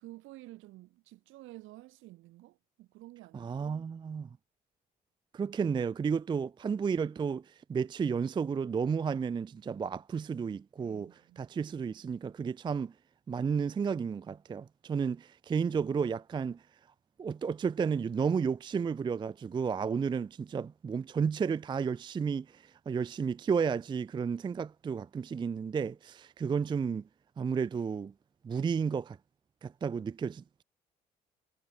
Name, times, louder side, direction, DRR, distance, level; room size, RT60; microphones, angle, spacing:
voice 1, 0.0-3.5 10.8-11.4, right 18 dB, 70° right, 4.5 m, -51 dB
voice 2, 3.3-4.3 5.3-12.9 13.3-16.6 17.2-27.0 27.4-28.1 28.4-29.2 29.6-30.6, right 6 dB, 20° right, 0.4 m, -32 dB
hypercardioid pair, 55°, 21 cm